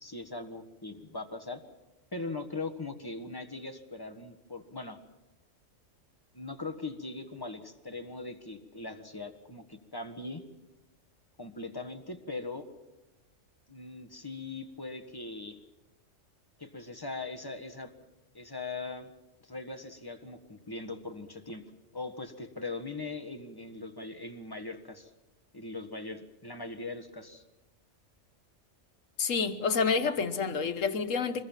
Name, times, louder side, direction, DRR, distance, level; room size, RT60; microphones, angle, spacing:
voice 1, 0.0-1.6 2.1-5.0 6.3-10.4 11.4-12.6 13.7-15.6 16.6-17.9 18.3-19.1 19.4-21.6 21.9-25.1 25.5-27.4, left 3 dB, 20° left, 1.5 m, -40 dB
voice 2, 29.2-31.4, left 5 dB, 85° left, 1.6 m, -28 dB
25.0 x 21.0 x 7.4 m
omnidirectional pair, 1.3 m